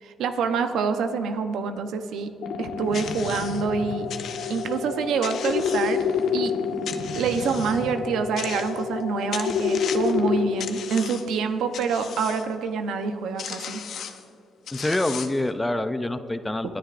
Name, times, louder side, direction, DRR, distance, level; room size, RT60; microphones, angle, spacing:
voice 1, 0.0-2.3 2.6-4.1 4.5-6.0 6.3-6.5 7.1-13.8, right 5 dB, 80° right, 7 dB, 0.8 m, -26 dB
sound 1, 2.4-10.4, left 6 dB, 85° left, 1.3 m, -28 dB
sound 2, 2.9-3.6 4.1-4.8 5.2-6.3 6.9-7.8 8.4-9.0 9.3-10.2 10.6-11.4 11.7-12.5 13.1-13.2 13.4-14.2 14.7-15.5, left 8 dB, 70° left, 0.8 m, -37 dB
voice 2, 14.7-16.8, left 1 dB, 15° left, 11 dB, 0.5 m, -26 dB
27.5 x 10.0 x 2.6 m, 2.6 s
cardioid pair, 90°, 0 cm